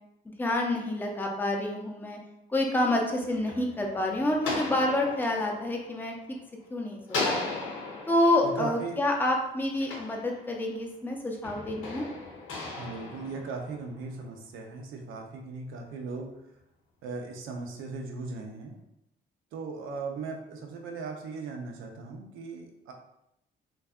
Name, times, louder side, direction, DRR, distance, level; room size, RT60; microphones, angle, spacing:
voice 1, 0.4-2.2 2.5-6.1 6.7-7.5 8.1-12.1, left 1 dB, 10° left, 0 dB, 0.5 m, -28 dB
sound 1, 2.9-6.6 7.1-10.8 11.4-14.1, left 3 dB, 85° left, 0.7 m, -37 dB
voice 2, 8.4-9.0 12.7-16.3 17.0-18.8 19.5-22.9, right 4 dB, 85° right, 2 dB, 0.5 m, -38 dB
2.6 x 2.2 x 2.3 m, 0.83 s
cardioid pair, 90°, 20 cm